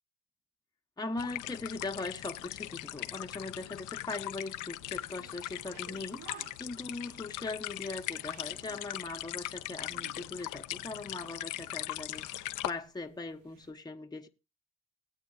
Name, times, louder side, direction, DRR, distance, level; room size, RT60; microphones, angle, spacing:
voice 1, 1.0-14.3, left 3 dB, 15° left, 1.1 m, -40 dB
sound 1, 1.2-12.7, left 15 dB, 85° left, 0.7 m, -40 dB
sound 2, 4.1-13.7, right 8 dB, 85° right, 1.3 m, -58 dB
19.5 x 8.4 x 2.5 m
cardioid pair, 90°, 30 cm